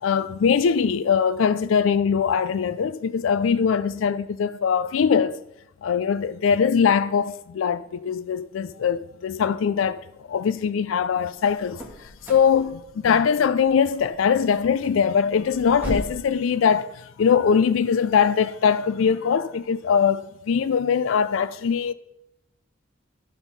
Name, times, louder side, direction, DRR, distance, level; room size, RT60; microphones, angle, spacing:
voice 1, 0.0-5.4 5.8-10.0 10.3-11.8 12.3-16.9 17.2-21.9, left 6 dB, 80° left, 0.4 m, -21 dB
sound 1, 11.3-16.3, equal, 10° right, 1.8 m, -38 dB
12.0 x 4.5 x 5.3 m
head